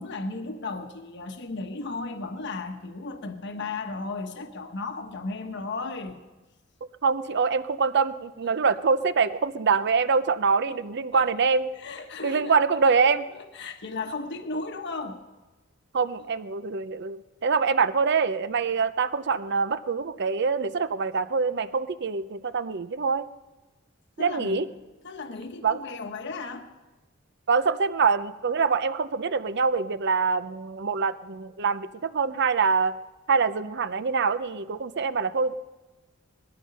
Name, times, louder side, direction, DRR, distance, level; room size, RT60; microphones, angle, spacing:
voice 1, 0.0-6.2 10.7-10.8 11.1-11.2 11.8-12.6 13.5-15.2 24.2-24.7 25.0-26.7, left 3 dB, 60° left, 6 dB, 1.2 m, -35 dB
voice 2, 7.0-11.7 12.2-13.3 15.9-23.2 24.2-24.7 25.6-25.8 27.5-32.9 33.3-35.5, right 5 dB, 60° right, 13 dB, 0.7 m, -25 dB
19.5 x 13.5 x 5.5 m, 1.1 s
head